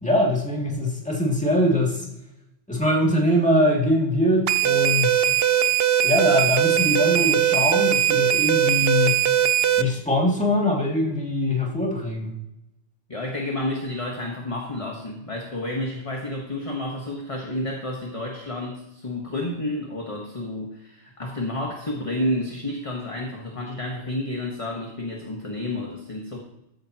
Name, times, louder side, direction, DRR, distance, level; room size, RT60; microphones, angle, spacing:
voice 1, 0.0-2.1 2.7-5.2 6.0-9.2 9.8-12.3, left 1 dB, 5° left, -3 dB, 2.2 m, -22 dB
sound 1, 4.5-9.8, right 11 dB, 65° right, 0.8 m, -20 dB
voice 2, 13.1-26.4, left 1 dB, 30° left, 0 dB, 1.2 m, -30 dB
14.0 x 8.9 x 2.9 m, 0.88 s
omnidirectional pair, 1.2 m